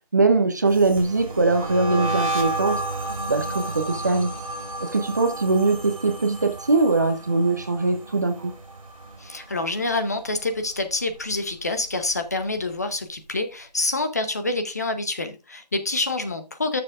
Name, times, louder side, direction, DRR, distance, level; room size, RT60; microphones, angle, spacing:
voice 1, 0.1-2.8 3.3-4.3 4.8-8.5, right 3 dB, 25° right, 0.6 m, -21 dB
sound 1, 0.7-9.9 10.1-10.6 10.9-12.4, right 2 dB, 50° right, 2.3 m, -32 dB
voice 2, 9.2-16.8, left 2 dB, 25° left, 0.6 m, -27 dB
12.5 x 6.8 x 2.4 m
figure-of-eight pair, 160°, 21 cm